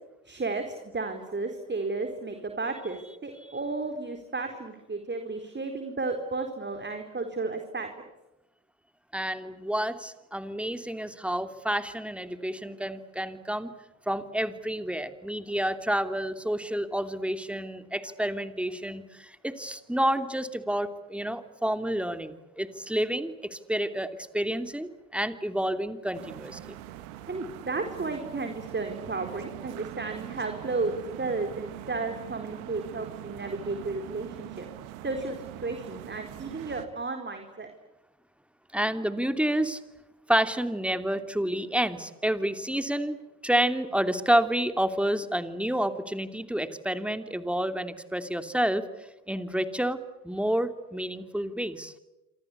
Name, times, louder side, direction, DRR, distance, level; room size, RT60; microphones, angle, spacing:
voice 1, 0.3-7.9 27.3-34.7 35.0-37.7, right 3 dB, 25° right, 5 dB, 4.2 m, -33 dB
voice 2, 9.1-13.7 14.1-26.6 38.7-39.8 40.3-43.2 43.4-48.8 49.3-50.0 50.2-51.9, right 1 dB, 5° right, 9 dB, 2.9 m, -29 dB
sound 1, 26.1-36.9, right 13 dB, 80° right, 2.2 m, -42 dB
27.5 x 25.0 x 8.4 m, 1.0 s
hypercardioid pair, 55°, 43 cm